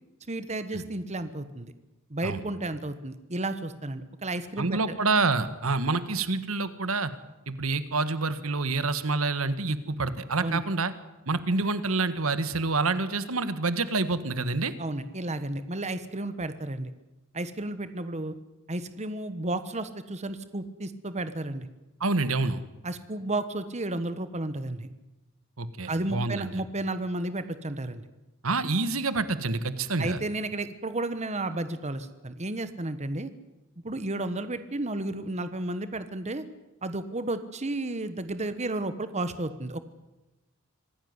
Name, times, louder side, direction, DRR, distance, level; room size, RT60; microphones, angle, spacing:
voice 1, 0.3-1.7 2.1-4.8 10.4-10.6 14.8-16.9 17.3-18.4 18.7-21.7 22.8-24.9 25.9-28.0 30.0-33.3 33.8-36.4 36.8-39.8, right 2 dB, 35° right, 11 dB, 1.3 m, -32 dB
voice 2, 4.6-7.1 7.5-10.9 11.3-14.7 22.0-22.6 25.6-26.6 28.4-30.2, right 3 dB, 85° right, 12 dB, 1.6 m, -27 dB
25.5 x 17.5 x 9.7 m, 1.0 s
head